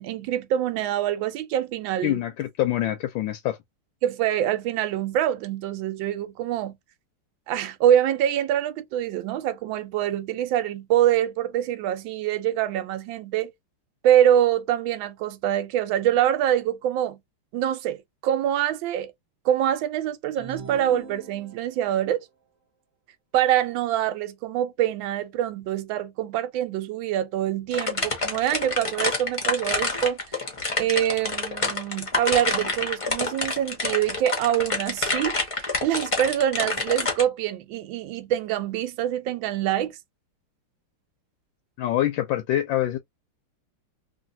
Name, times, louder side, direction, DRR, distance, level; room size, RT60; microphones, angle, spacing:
voice 1, 0.0-2.2 4.0-6.8 7.5-13.5 14.0-17.2 17.5-19.1 19.4-22.3 23.3-30.2 30.8-40.0, right 11 dB, 75° right, 1.3 m, -25 dB
voice 2, 2.0-3.6 41.8-43.0, left 13 dB, 75° left, 1.2 m, -25 dB
sound 1, 20.3-21.9, right 4 dB, 30° right, 0.8 m, -41 dB
sound 2, 27.7-37.2, left 3 dB, 40° left, 0.4 m, -27 dB
3.2 x 2.6 x 2.6 m
omnidirectional pair, 2.4 m